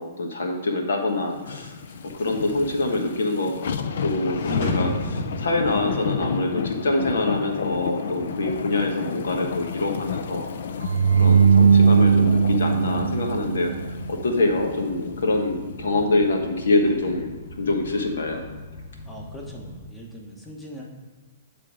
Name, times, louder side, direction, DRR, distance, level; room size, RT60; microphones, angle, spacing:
voice 1, 0.0-1.7 2.1-10.5 11.2-13.8 14.1-17.3 17.6-18.4, left 2 dB, 85° left, 3 dB, 1.1 m, -25 dB
sound 1, 1.3-15.8 16.2-16.3, left 6 dB, 70° left, 0.4 m, -33 dB
sound 2, 1.8-19.7, left 2 dB, 50° left, 1.8 m, -38 dB
sound 3, 10.8-14.0, right 6 dB, 85° right, 0.3 m, -18 dB
voice 2, 19.1-20.8, equal, 5° left, -2 dB, 1.0 m, -40 dB
9.1 x 3.3 x 4.9 m, 1.3 s
hypercardioid pair, 145°, 0 cm